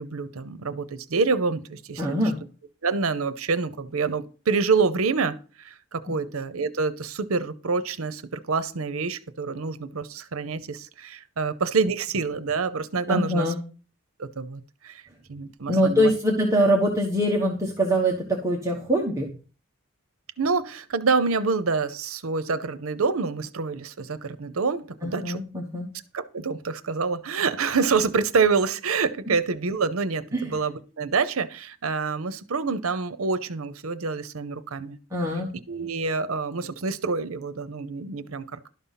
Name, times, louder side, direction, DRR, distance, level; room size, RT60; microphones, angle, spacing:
voice 1, 0.0-2.0 2.8-13.5 14.2-15.0 15.3-16.1 20.4-25.4 26.1-35.0 35.7-38.7, right 4 dB, 85° right, 0.7 m, -27 dB
voice 2, 2.0-2.4 13.1-13.6 15.7-19.3 25.0-25.9 30.3-30.6 35.1-35.5, equal, 15° right, 1.2 m, -23 dB
12.0 x 5.6 x 5.7 m
head